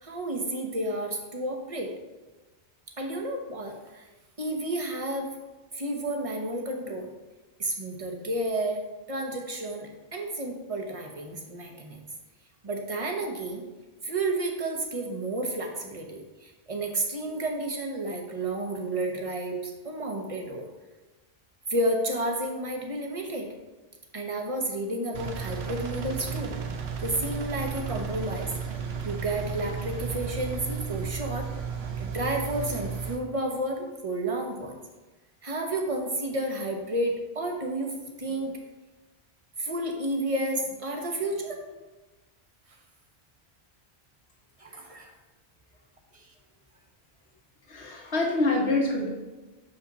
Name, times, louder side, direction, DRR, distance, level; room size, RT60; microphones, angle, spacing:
voice 1, 0.0-1.9 3.0-4.0 4.4-5.3 5.7-7.1 7.6-8.8 9.1-12.0 12.6-13.6 14.0-20.7 21.7-23.5 24.1-26.5 27.0-28.5 29.0-31.5 32.0-34.7 35.4-38.6 39.6-41.7 44.6-45.1 46.1-46.3, right 1 dB, 35° right, 2 dB, 1.0 m, -31 dB
Engine, 25.1-33.2, right 6 dB, 75° right, 1.0 m, -34 dB
voice 2, 47.7-49.1, left 2 dB, 85° left, -1 dB, 1.7 m, -26 dB
6.9 x 5.4 x 4.0 m, 1.2 s
omnidirectional pair, 1.1 m